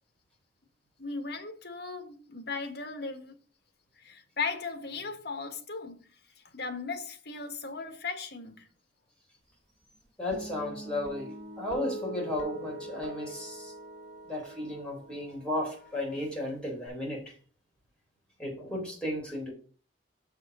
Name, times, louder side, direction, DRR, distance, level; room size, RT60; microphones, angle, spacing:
voice 1, 1.0-3.3 4.0-6.0 6.5-8.7, left 4 dB, 60° left, 1.5 m, -37 dB
voice 2, 10.2-13.7 14.3-17.3 18.4-19.5, left 1 dB, 5° left, 4.0 m, -34 dB
Guitar, 10.3-16.9, right 1 dB, 30° right, 5.7 m, -43 dB
7.1 x 6.1 x 6.1 m
head